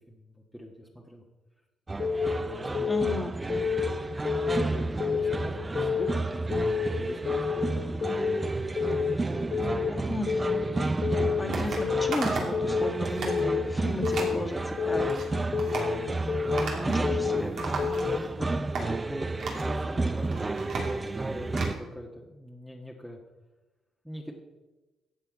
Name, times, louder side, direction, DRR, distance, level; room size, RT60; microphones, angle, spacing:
voice 1, 0.1-1.2 2.3-2.9 3.7-3.9 4.4-8.4 9.2-10.0 16.4-17.2 17.7-20.5 20.8-23.2 24.0-24.3, equal, ahead, -1 dB, 1.5 m, -42 dB
sound 1, 1.9-21.7, right 3 dB, 25° right, 0.5 m, -31 dB
Keyboard (musical) / Alarm, 2.0-2.4 2.7-3.1 3.5-3.9 4.2-4.6 5.0-5.4 5.8-6.1 6.5-6.9 7.3-7.6 8.0-8.4 8.8-9.1 9.5-9.9 10.3-10.6 11.0-11.4 11.8-12.1 12.5-12.9 13.3-13.7 14.0-14.4 14.8-15.2 15.5-15.9 16.3-16.7 17.0-17.4 17.8-18.2, left 6 dB, 50° left, 0.8 m, -28 dB
voice 2, 2.9-3.3 9.9-10.5 11.4-15.5 15.7-16.1 16.7-17.5 17.8-17.9, left 1 dB, 15° left, 3 dB, 1.9 m, -35 dB
sound 2, 11.5-11.8 12.1-12.6 12.9-13.4 14.0-14.3 14.9-15.3 15.6-15.9 16.6-17.1 17.3-18.3 18.7-18.9 19.4-19.7 20.2-21.8, right 4 dB, 70° right, 3.0 m, -35 dB
13.5 x 7.9 x 5.2 m, 1.1 s
cardioid pair, 90°, 0 cm